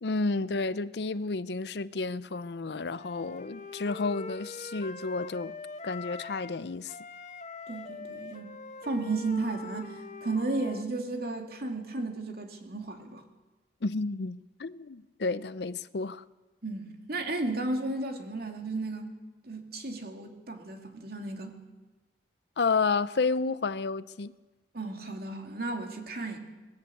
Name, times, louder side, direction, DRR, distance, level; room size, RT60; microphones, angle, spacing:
voice 1, 0.0-5.5 5.8-7.0 13.8-16.2 22.6-24.3, left 4 dB, 65° left, 0.6 m, -31 dB
Wind instrument woodwind instrument, 2.9-6.6 6.9-10.9, left 4 dB, 45° left, 1.0 m, -43 dB
voice 2, 7.7-8.5 8.8-13.2 16.6-19.1 19.4-21.5 24.7-26.4, right 2 dB, 60° right, 2.6 m, -34 dB
20.0 x 15.5 x 8.5 m
head